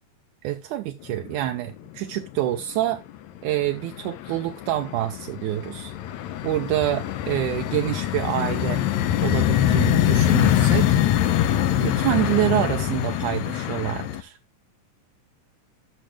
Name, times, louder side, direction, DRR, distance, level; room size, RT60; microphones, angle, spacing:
voice 1, 0.4-3.0 3.4-5.9 6.4-8.8 9.2-11.0 11.8-14.4, right 14 dB, 80° right, 2.1 m, -27 dB
sound 1, 1.1-1.7 2.0-2.7 3.1-14.2, left 11 dB, 75° left, 1.9 m, -23 dB
13.5 x 6.4 x 3.2 m
omnidirectional pair, 3.6 m